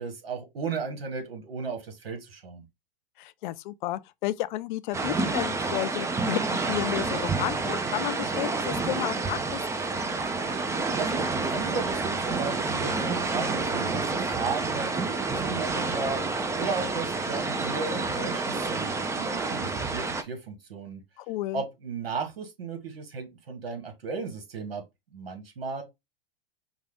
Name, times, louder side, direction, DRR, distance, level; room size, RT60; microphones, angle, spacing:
voice 1, 0.0-2.6 11.0-21.0 21.5-24.8 25.1-25.8, right 4 dB, 80° right, 1.5 m, -35 dB
voice 2, 3.2-6.4 6.7-9.6 21.2-21.6, left 16 dB, 55° left, 0.5 m, -32 dB
sound 1, 4.9-20.2, right 3 dB, 10° right, 0.4 m, -29 dB
5.2 x 2.4 x 3.4 m
hypercardioid pair, 110°, 29 cm